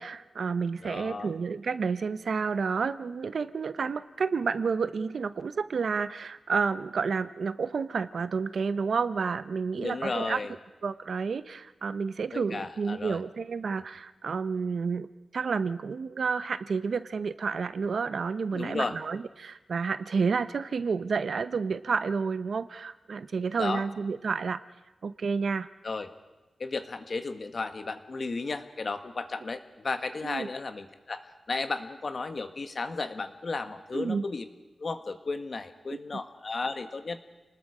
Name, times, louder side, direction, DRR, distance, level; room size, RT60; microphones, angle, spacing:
voice 1, 0.0-10.4 10.8-15.1 15.3-24.6 25.0-25.7 30.2-30.5 33.9-34.2, right 5 dB, 70° right, 13 dB, 0.8 m, -30 dB
voice 2, 0.8-1.3 9.8-10.5 12.3-13.2 18.5-18.9 23.6-23.8 25.8-26.1 26.6-34.4 34.8-37.2, left 3 dB, 50° left, 8 dB, 1.5 m, -34 dB
29.5 x 19.5 x 5.0 m, 1.1 s
wide cardioid pair, 115°, 0 cm